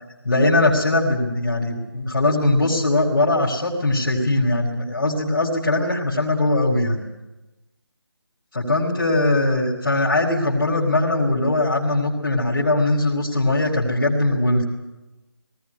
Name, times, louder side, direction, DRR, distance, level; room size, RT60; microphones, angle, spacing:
voice 1, 0.2-7.0 8.5-14.6, left 2 dB, 50° left, -5 dB, 4.7 m, -20 dB
19.0 x 16.5 x 9.9 m, 1.0 s
figure-of-eight pair, 175°, 13 cm